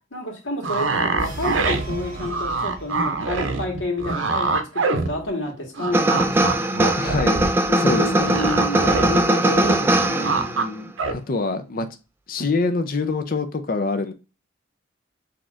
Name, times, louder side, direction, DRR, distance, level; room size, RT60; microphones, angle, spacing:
voice 1, 0.1-6.7 7.7-10.6, left 1 dB, 75° left, 1.5 m, -29 dB
sound 1, 0.6-5.5 5.8-9.2 9.5-10.6 11.0-11.1, right 3 dB, 80° right, 0.6 m, -24 dB
sound 2, 1.2-3.4, right 3 dB, 45° right, 1.4 m, -35 dB
sound 3, 5.9-10.7, right 1 dB, 10° right, 0.3 m, -20 dB
voice 2, 7.0-7.4 7.8-8.5 10.5-11.9 12.3-14.1, left 3 dB, 50° left, 0.5 m, -25 dB
6.1 x 2.9 x 2.4 m
head